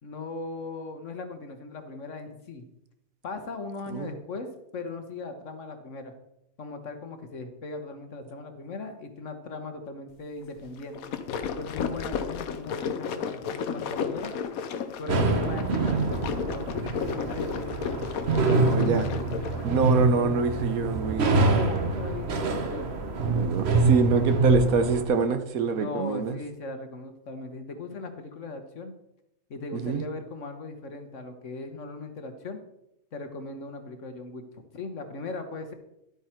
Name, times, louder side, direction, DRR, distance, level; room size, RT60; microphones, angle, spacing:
voice 1, 0.0-2.6 3.2-6.1 6.6-11.2 11.5-14.3 15.0-17.9 18.3-18.7 21.2-22.9 25.7-28.9 29.5-32.6 33.1-34.4 34.7-35.7, left 3 dB, 55° left, 7 dB, 1.5 m, -38 dB
sound 1, 10.8-19.7, left 7 dB, 70° left, 1.2 m, -33 dB
sound 2, 15.1-25.0, right 3 dB, 50° right, 1.2 m, -25 dB
voice 2, 18.6-19.1 19.6-21.2 23.3-26.4 29.7-30.0, right 5 dB, 70° right, 9 dB, 1.3 m, -26 dB
12.0 x 8.6 x 4.4 m, 0.83 s
omnidirectional pair, 1.6 m